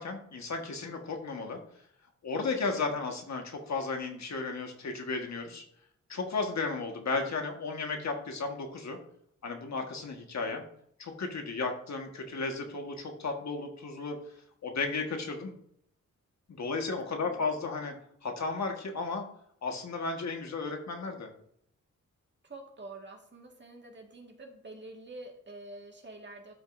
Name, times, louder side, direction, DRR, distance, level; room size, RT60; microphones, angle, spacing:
voice 1, 0.0-1.6 2.2-5.6 6.1-9.0 9.4-10.6 11.0-14.2 14.6-15.5 16.5-17.9 18.2-19.2 19.6-21.3, left 4 dB, 60° left, 3 dB, 1.6 m, -34 dB
voice 2, 17.1-17.6 22.4-26.5, right 2 dB, 35° right, 2 dB, 1.9 m, -47 dB
12.5 x 5.3 x 2.6 m, 0.68 s
cardioid pair, 85°, 31 cm